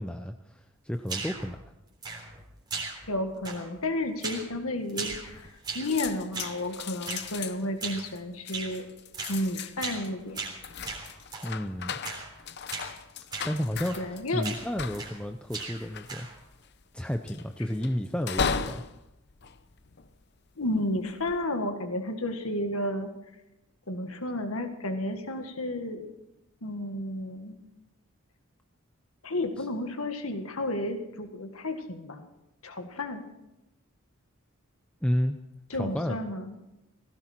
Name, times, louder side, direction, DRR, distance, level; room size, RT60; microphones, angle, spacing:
voice 1, 0.0-1.6 11.4-12.0 13.4-16.3 16.9-18.8 29.6-29.7 35.0-35.4 35.7-36.2, equal, 5° left, 6 dB, 0.5 m, -31 dB
sound 1, 1.1-1.5 2.0-2.4 2.7-3.2 3.4-3.8 4.2-4.5 4.9-6.0 6.3-6.6 7.0-7.3 7.8-8.1 8.5-8.7 9.1-9.4 9.8-10.1 10.3-11.5 12.0-12.3 12.7-12.9 13.3-13.5 13.8-14.1 14.4-15.2 15.5-16.4, right 4 dB, 20° right, 3.7 m, -37 dB
voice 2, 3.1-8.9 9.3-10.5 14.0-14.4 20.6-23.1 23.9-26.1 26.6-27.6 29.2-32.3 32.6-33.2 35.7-36.5, left 1 dB, 85° left, 6 dB, 1.8 m, -32 dB
sound 2, 5.1-5.6 5.8-20.4 21.0-21.4, left 6 dB, 50° left, 0.7 m, -37 dB
18.5 x 17.0 x 4.5 m, 0.92 s
head